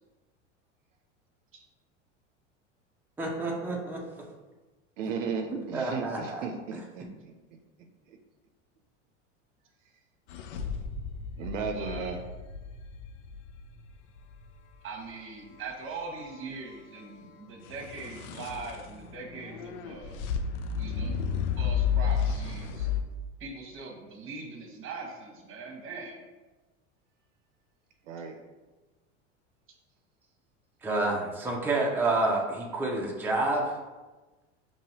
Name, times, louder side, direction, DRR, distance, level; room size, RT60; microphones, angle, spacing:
voice 1, 3.2-4.0 5.7-6.4 30.8-33.8, right 2 dB, 5° right, -2 dB, 0.7 m, -28 dB
voice 2, 5.0-7.3 11.4-12.2 28.1-28.3, right 5 dB, 75° right, 4 dB, 0.6 m, -35 dB
sound 1, 10.3-14.4 17.7-23.0, left 7 dB, 65° left, 0.5 m, -32 dB
voice 3, 11.7-12.1 14.8-20.2 20.8-21.2 21.6-22.9 23.4-26.2, right 4 dB, 35° right, 1 dB, 1.1 m, -41 dB
5.3 x 3.0 x 2.8 m, 1.2 s
hypercardioid pair, 85°, 37 cm